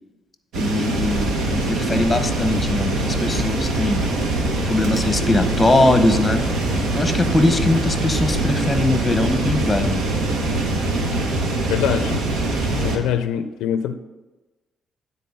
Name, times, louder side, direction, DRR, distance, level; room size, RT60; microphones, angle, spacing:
voice 1, 0.5-4.0 4.6-6.5 6.9-10.0, left 2 dB, 15° left, 8 dB, 0.9 m, -21 dB
sound 1, 0.5-13.0, right 2 dB, 85° right, 1.0 m, -24 dB
sound 2, 0.9-13.0, right 1 dB, 20° right, 2.1 m, -28 dB
voice 2, 11.7-12.2 12.8-13.9, left 9 dB, 90° left, 11 dB, 0.4 m, -23 dB
9.2 x 4.1 x 5.4 m, 1.1 s
cardioid pair, 90°, 0 cm